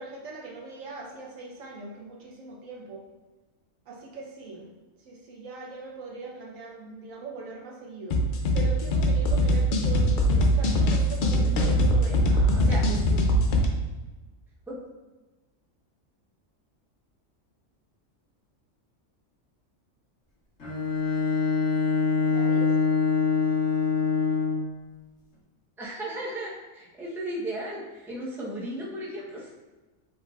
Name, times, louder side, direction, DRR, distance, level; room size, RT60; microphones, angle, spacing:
voice 1, 0.0-3.0 3.9-4.7 5.0-8.2 8.5-12.9 22.2-22.7, right 3 dB, 85° right, -2 dB, 1.3 m, -41 dB
sound 1, 8.1-13.7, equal, 55° left, 0.6 m, -22 dB
voice 2, 11.1-11.8 12.5-13.3 14.7-14.8 25.8-29.5, right 1 dB, ahead, -5 dB, 0.7 m, -36 dB
Bowed string instrument, 20.6-24.8, left 5 dB, 75° left, 1.9 m, -24 dB
5.4 x 3.6 x 2.4 m, 1.2 s
omnidirectional pair, 1.3 m